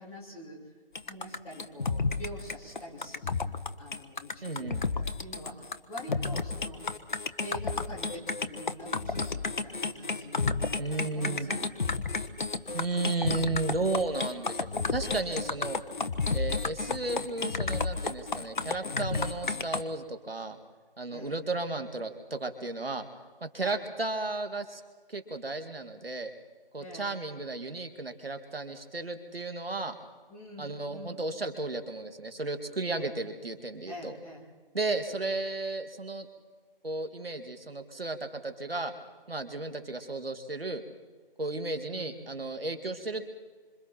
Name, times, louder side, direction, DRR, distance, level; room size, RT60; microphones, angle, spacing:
voice 1, 0.0-3.3 3.8-6.8 7.4-11.7 21.1-21.4 23.6-23.8 26.8-27.1 30.3-31.3 32.9-33.2 33.9-34.4 41.9-42.2, equal, 10° left, -6 dB, 3.4 m, -45 dB
sound 1, 0.9-19.8, left 4 dB, 55° left, 1.3 m, -32 dB
voice 2, 4.4-4.8 10.8-11.5 12.7-15.8 16.3-20.6 21.0-23.1 23.4-24.8 25.1-26.3 26.7-30.0 30.6-34.1 34.7-36.3 36.8-38.9 39.3-40.8 41.4-43.3, right 2 dB, 80° right, 8 dB, 2.5 m, -34 dB
26.5 x 26.5 x 4.5 m, 1.4 s
figure-of-eight pair, 160°, 29 cm